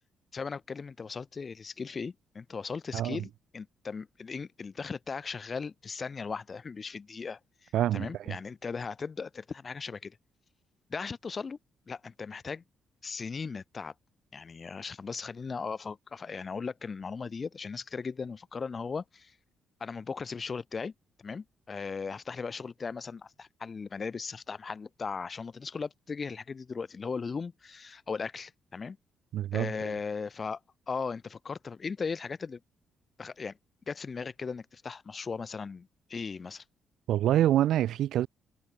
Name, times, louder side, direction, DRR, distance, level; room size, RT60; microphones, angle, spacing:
voice 1, 0.3-10.2 10.9-11.6 11.9-12.6 13.0-13.9 14.3-19.3 19.8-20.9 21.2-29.0 29.5-30.6 30.9-32.6 33.2-33.6 33.9-36.6, left 5 dB, 35° left, 3.8 m, -37 dB
voice 2, 7.7-8.4 29.3-29.9 37.1-38.3, right 12 dB, 80° right, 1.7 m, -26 dB
cardioid pair, 90°, 0 cm